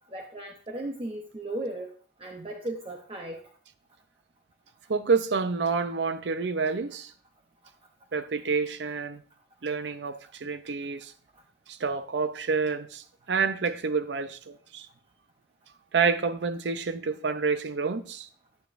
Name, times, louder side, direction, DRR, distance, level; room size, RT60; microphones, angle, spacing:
voice 1, 0.1-1.9 2.2-3.4, right 1 dB, 30° right, 0.7 m, -36 dB
voice 2, 4.9-7.1 8.1-9.2 9.6-11.1 11.7-14.9 15.9-18.3, right 5 dB, 80° right, 0.5 m, -28 dB
10.5 x 9.2 x 2.5 m
head